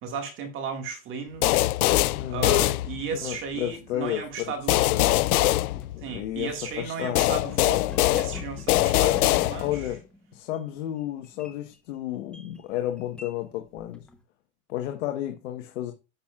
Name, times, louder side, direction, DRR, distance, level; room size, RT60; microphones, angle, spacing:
voice 1, 0.0-1.7 2.3-4.8 6.0-9.9, right 6 dB, 30° right, 1.8 m, -35 dB
sound 1, 1.4-3.3 4.7-6.4 7.2-9.9, left 17 dB, 80° left, 0.5 m, -23 dB
voice 2, 2.2-2.5 3.1-5.0 5.9-7.2 9.6-10.0 10.3-14.0 14.7-15.9, left 13 dB, 60° left, 1.2 m, -32 dB
sound 2, 5.8-5.9 6.7-14.2, left 1 dB, ahead, 0.8 m, -47 dB
11.0 x 7.3 x 2.4 m
supercardioid pair, 150°, 43 cm